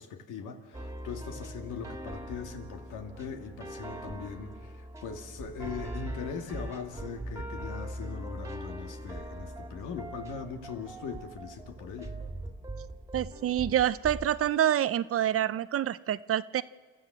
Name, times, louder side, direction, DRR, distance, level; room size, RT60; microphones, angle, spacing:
voice 1, 0.0-12.1, left 6 dB, 75° left, 5 dB, 2.2 m, -40 dB
sound 1, 0.7-14.5, right 1 dB, 10° right, 2.2 m, -41 dB
voice 2, 13.1-16.6, right 11 dB, 45° right, 16 dB, 0.6 m, -27 dB
28.0 x 13.5 x 7.5 m, 1.5 s
supercardioid pair, 80°, 31 cm